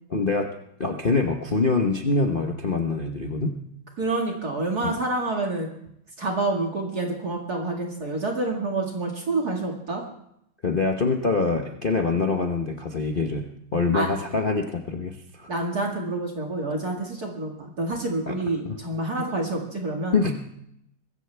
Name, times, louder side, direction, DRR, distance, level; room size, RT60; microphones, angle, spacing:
voice 1, 0.1-0.5 0.8-3.6 4.8-4.9 10.6-15.5 18.3-18.4 18.6-18.8 20.1-20.5, left 3 dB, 40° left, 2 dB, 0.7 m, -25 dB
voice 2, 4.0-5.7 6.2-10.0 13.9-14.1 15.5-20.2, right 2 dB, 45° right, 0 dB, 2.5 m, -28 dB
23.5 x 14.5 x 3.4 m, 0.76 s
omnidirectional pair, 2.4 m